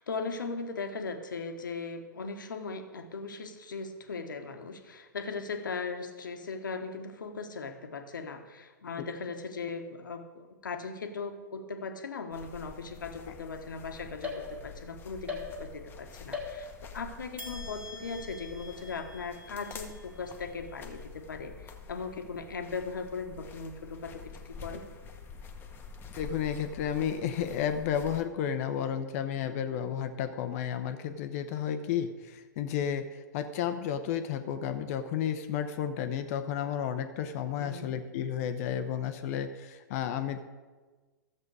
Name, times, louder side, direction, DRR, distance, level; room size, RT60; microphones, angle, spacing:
voice 1, 0.0-24.8 37.6-37.9, left 4 dB, 75° left, 6 dB, 1.2 m, -38 dB
sound 1, 12.3-28.2, left 5 dB, 20° left, 1.2 m, -47 dB
sound 2, 14.2-14.9 15.3-15.9 16.3-17.0 17.4-20.8, left 4 dB, 10° right, 2.1 m, -43 dB
voice 2, 26.2-40.4, left 9 dB, 45° left, 9 dB, 0.8 m, -32 dB
13.0 x 7.5 x 4.8 m, 1.3 s
figure-of-eight pair, 110°, 11 cm